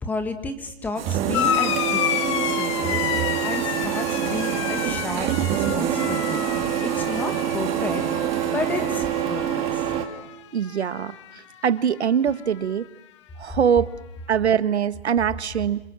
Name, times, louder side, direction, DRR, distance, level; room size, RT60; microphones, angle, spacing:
voice 1, 0.0-6.4 6.8-8.3 8.5-9.8, left 3 dB, 5° left, 7 dB, 1.4 m, -32 dB
Printer, 1.0-10.0, right 10 dB, 20° right, 1.8 m, -26 dB
sound 1, 1.0-10.6, right 8 dB, 60° right, 2.4 m, -37 dB
sound 2, 1.3-10.4 10.6-11.4 12.5-12.6, left 11 dB, 25° left, 0.9 m, -30 dB
voice 2, 10.5-11.2 11.6-12.9 13.4-13.9 14.3-15.8, right 8 dB, 85° right, 14 dB, 1.5 m, -22 dB
27.5 x 25.0 x 7.6 m, 0.89 s
hypercardioid pair, 165°, 32 cm